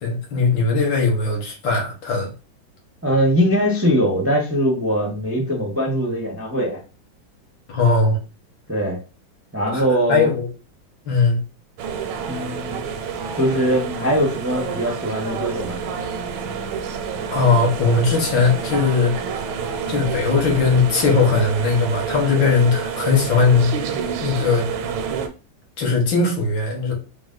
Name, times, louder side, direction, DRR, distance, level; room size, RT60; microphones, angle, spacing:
voice 1, 0.0-2.3 7.7-8.2 9.7-10.5 11.1-11.4 17.3-19.1 19.9-23.7 24.2-24.7 25.8-26.9, left 4 dB, 75° left, 1.9 m, -19 dB
voice 2, 3.0-6.8 8.7-9.0 9.5-10.3 12.3-12.9 13.3-15.8, equal, 20° right, 0.4 m, -21 dB
sound 1, 11.8-25.3, right 6 dB, 80° right, 1.5 m, -28 dB
4.8 x 2.2 x 3.7 m
omnidirectional pair, 2.2 m